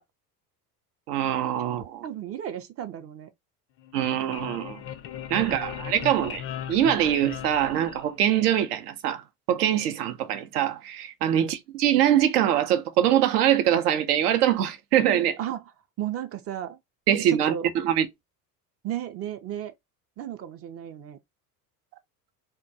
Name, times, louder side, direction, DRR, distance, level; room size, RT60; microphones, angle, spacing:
voice 1, 1.1-2.0 3.9-4.8 5.3-6.4 6.7-9.2 9.5-15.4 17.1-18.1, right 10 dB, 80° right, 0.6 m, -23 dB
voice 2, 2.0-3.3 5.4-5.6 11.3-11.5 15.4-15.6 16.0-16.8 17.3-17.7 18.8-19.7 20.2-21.2, right 11 dB, 35° right, 0.4 m, -34 dB
sound 1, 3.8-8.5, left 10 dB, 35° left, 0.4 m, -38 dB
2.3 x 2.2 x 2.6 m
hypercardioid pair, 75°, 45 cm